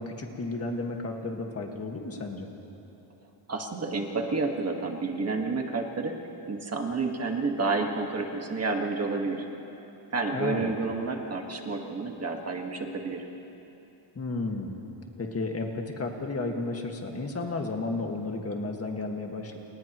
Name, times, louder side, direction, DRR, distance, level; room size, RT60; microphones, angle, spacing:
voice 1, 0.0-2.5 10.3-10.7 14.1-14.8 15.2-19.6, left 2 dB, 30° left, 2 dB, 1.8 m, -33 dB
voice 2, 3.5-6.2 6.5-9.4 10.1-13.3, right 3 dB, 30° right, 2 dB, 1.6 m, -30 dB
29.5 x 29.5 x 3.1 m, 3.0 s
cardioid pair, 155°, 50 cm